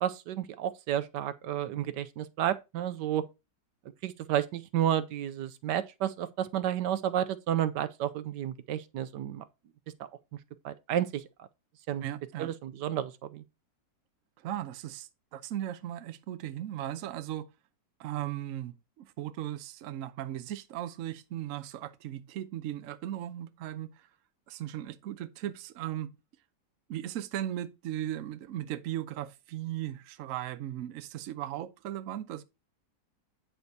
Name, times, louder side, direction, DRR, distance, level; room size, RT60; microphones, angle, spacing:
voice 1, 0.0-3.2 4.0-9.4 10.6-11.5 11.9-12.0 12.4-13.4, right 11 dB, 80° right, 1.2 m, -31 dB
voice 2, 12.0-12.5 14.4-17.5 18.0-24.1 24.5-26.2 26.9-32.4, right 12 dB, 65° right, 0.8 m, -37 dB
8.4 x 7.8 x 2.7 m
omnidirectional pair, 1.9 m